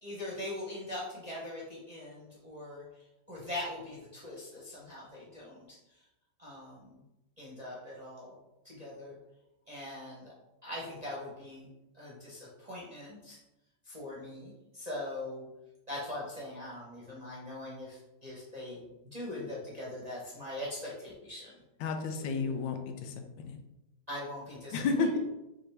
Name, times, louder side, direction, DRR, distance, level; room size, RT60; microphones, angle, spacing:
voice 1, 0.0-2.8 3.3-5.8 6.4-7.0 7.4-8.4 8.6-9.2 9.7-10.3 10.6-11.7 11.9-13.4 13.8-15.5 15.9-21.5 22.2-22.5 24.1-25.2, left 1 dB, 30° right, -6 dB, 0.7 m, -42 dB
voice 2, 21.8-23.6 24.7-25.1, left 4 dB, 85° left, 5 dB, 1.4 m, -32 dB
5.8 x 2.7 x 3.3 m, 0.95 s
omnidirectional pair, 2.0 m